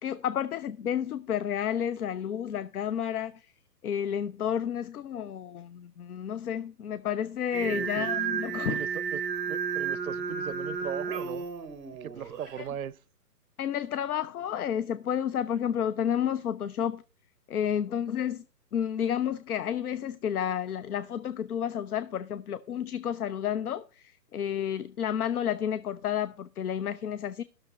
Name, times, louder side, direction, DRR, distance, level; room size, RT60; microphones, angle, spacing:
voice 1, 0.0-3.4 3.8-8.8 13.6-17.0 17.5-18.4 18.7-27.4, left 9 dB, 65° left, 0.6 m, -31 dB
Singing, 7.5-12.6, right 6 dB, 20° right, 1.0 m, -33 dB
voice 2, 7.6-8.1 8.7-9.2 9.5-11.4 12.0-13.0, right 8 dB, 60° right, 0.6 m, -38 dB
13.5 x 6.4 x 4.1 m
hypercardioid pair, 150°, 50 cm